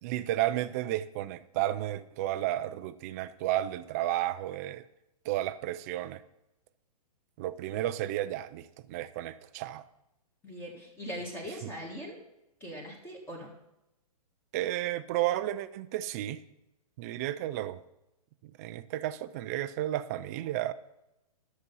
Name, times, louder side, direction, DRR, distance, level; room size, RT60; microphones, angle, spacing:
voice 1, 0.0-4.9 5.2-6.2 7.4-9.9 11.6-11.7 14.5-16.4 17.0-17.8 18.4-20.7, right 14 dB, 25° right, 0.4 m, -32 dB
voice 2, 10.4-12.2 12.6-13.5, equal, 10° left, 1.6 m, -40 dB
11.5 x 6.8 x 5.5 m
hypercardioid pair, 155°, 20 cm